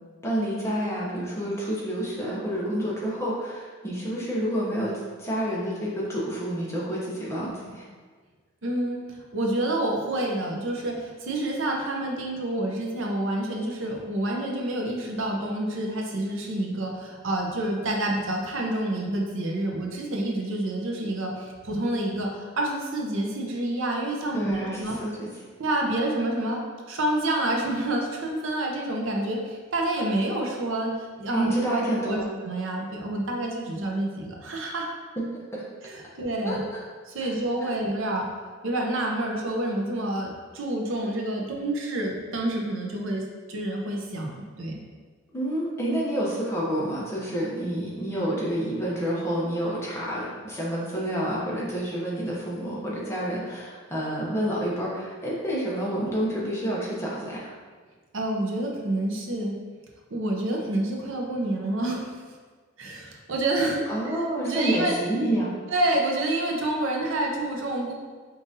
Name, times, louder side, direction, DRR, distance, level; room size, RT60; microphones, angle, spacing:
voice 1, 0.2-7.9 24.3-25.3 31.3-32.3 35.3-35.4 36.4-36.8 37.2-37.3 37.6-37.7 45.3-57.5 63.9-65.5, right 1 dB, 10° left, -6 dB, 0.7 m, -29 dB
voice 2, 8.6-25.0 25.6-26.6 26.9-34.9 35.8-36.6 37.1-38.3 38.6-44.8 58.1-59.5 60.1-62.1 62.8-64.2 64.4-64.9 65.7-67.9, right 1 dB, 60° right, 0 dB, 0.6 m, -28 dB
5.3 x 2.5 x 2.7 m, 1.5 s
head